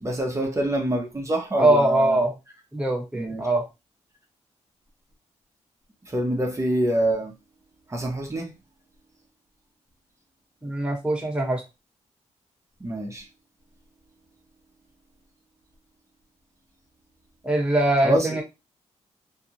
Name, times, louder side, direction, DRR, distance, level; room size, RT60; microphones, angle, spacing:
voice 1, 0.0-2.2 3.1-3.5 6.1-7.4 7.9-8.5 12.8-13.2 18.0-18.3, right 1 dB, 25° right, 0.8 m, -26 dB
voice 2, 1.6-2.3 2.7-3.6 10.6-11.6 17.4-18.4, right 1 dB, 10° right, 1.2 m, -22 dB
2.7 x 2.3 x 2.9 m
cardioid pair, 90°, 13 cm